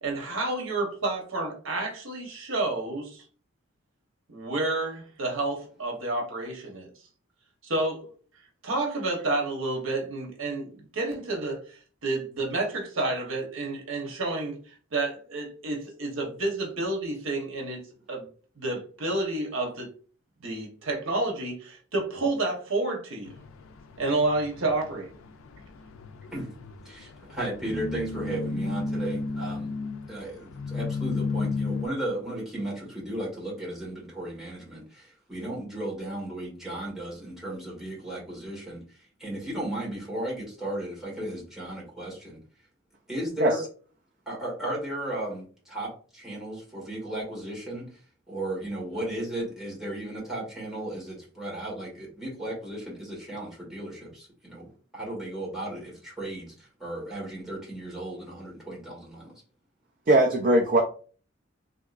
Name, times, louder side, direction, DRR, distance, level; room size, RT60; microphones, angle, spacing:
voice 1, 0.0-3.2 4.3-6.9 7.6-8.1 8.6-17.8 18.1-18.2 18.6-19.9 20.4-23.3 24.0-25.1, right 2 dB, 80° right, 1.0 m, -30 dB
sound 1, 23.2-31.9, left 3 dB, 85° left, 0.4 m, -34 dB
voice 2, 26.8-29.7 30.1-42.4 43.1-43.6 44.2-47.9 48.3-54.7 54.9-59.3, right 1 dB, ahead, 1.4 m, -35 dB
voice 3, 60.1-60.8, right 1 dB, 40° right, 0.4 m, -20 dB
3.5 x 2.8 x 2.4 m
head